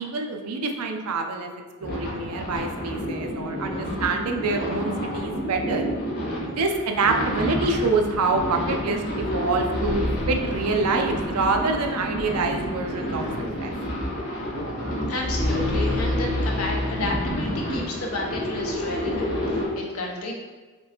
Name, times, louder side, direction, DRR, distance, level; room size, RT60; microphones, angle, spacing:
voice 1, 0.0-1.5 1.8-5.8 6.4-13.2 13.6-13.7, right 3 dB, 90° right, 4 dB, 0.5 m, -26 dB
sound 1, 1.8-19.7, equal, 45° left, 1.1 m, -29 dB
voice 2, 15.1-20.3, left 2 dB, 70° left, 0 dB, 0.8 m, -31 dB
4.4 x 3.2 x 2.8 m, 1.3 s
head